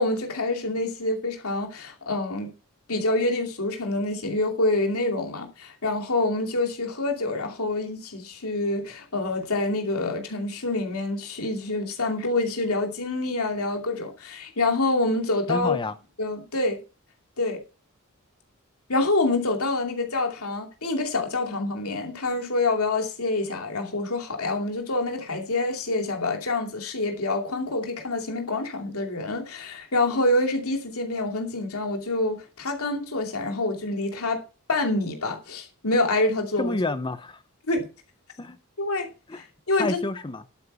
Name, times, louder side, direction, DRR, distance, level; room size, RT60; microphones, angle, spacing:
voice 1, 0.0-2.5 2.9-15.8 16.2-16.8 17.4-17.6 18.9-34.4 34.7-36.8 37.7-37.9 38.8-39.1 39.7-40.0, left 2 dB, 85° left, 2.7 m, -26 dB
voice 2, 15.5-15.9 36.6-37.4 38.4-38.6 39.3-39.4 39.7-40.4, left 2 dB, 20° left, 0.6 m, -29 dB
11.5 x 8.7 x 5.5 m
head